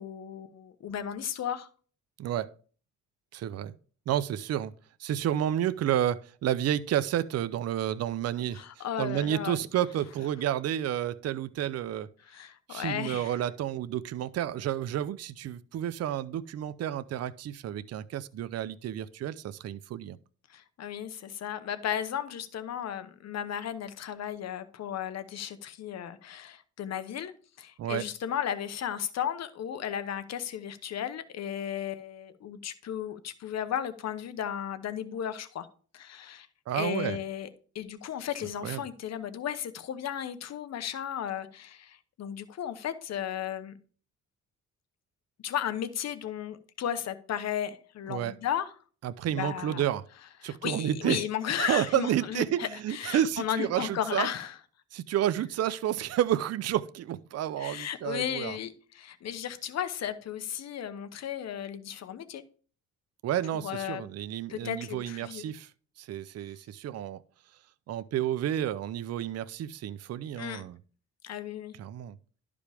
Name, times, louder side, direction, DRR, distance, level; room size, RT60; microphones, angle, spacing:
voice 1, 0.0-1.7 8.5-9.6 12.3-13.4 20.5-27.3 27.6-35.7 35.9-36.5 36.7-37.5 37.7-43.8 45.4-48.7 49.3-49.8 50.4-54.5 57.6-62.4 63.6-64.0 64.5-65.4 70.4-70.6 71.2-71.7, left 9 dB, 60° left, 0.9 m, -35 dB
voice 2, 2.2-2.5 3.3-3.7 4.1-4.7 5.0-12.1 12.7-20.2 27.8-28.1 36.7-37.2 38.6-38.8 48.1-48.3 49.0-50.0 50.4-51.2 51.6-54.3 54.9-58.6 63.2-65.7 66.0-67.2 67.9-70.8 71.8-72.2, right 11 dB, 55° right, 0.5 m, -30 dB
11.5 x 5.0 x 3.4 m
cardioid pair, 90°, 30 cm